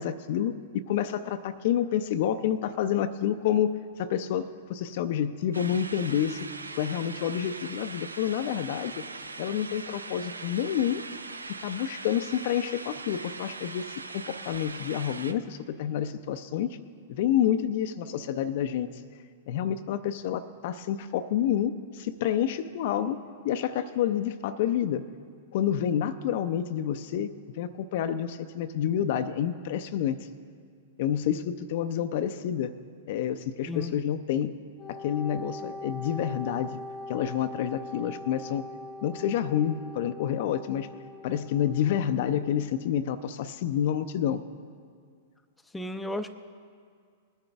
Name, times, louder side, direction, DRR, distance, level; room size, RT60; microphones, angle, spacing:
voice 1, 0.0-6.5 6.7-9.0 9.4-11.0 11.6-16.8 17.1-18.9 19.5-23.2 23.4-25.1 25.5-30.2 31.0-32.8 33.1-34.6 34.9-36.8 37.1-38.7 39.0-40.9 41.2-44.4, left 10 dB, 55° left, 10 dB, 0.5 m, -28 dB
sound 1, 5.5-15.3, right 3 dB, 90° right, 0.5 m, -41 dB
Wind instrument woodwind instrument, 34.8-42.5, left 2 dB, 25° left, 0.9 m, -42 dB
voice 2, 45.7-46.3, left 1 dB, 5° left, 7 dB, 0.6 m, -33 dB
20.0 x 10.0 x 3.4 m, 2.1 s
hypercardioid pair, 105°, 0 cm